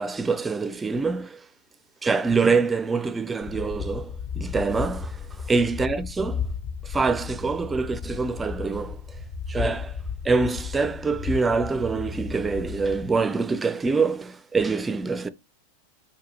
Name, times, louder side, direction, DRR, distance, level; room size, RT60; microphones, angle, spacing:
voice 1, 0.0-1.4 2.0-6.5 6.8-9.0 9.5-10.0 10.2-15.3, right 4 dB, 15° right, 0.4 m, -25 dB
sound 1, 3.4-13.2, left 5 dB, 45° left, 0.6 m, -34 dB
4.6 x 2.3 x 2.8 m
figure-of-eight pair, 90°, 0 cm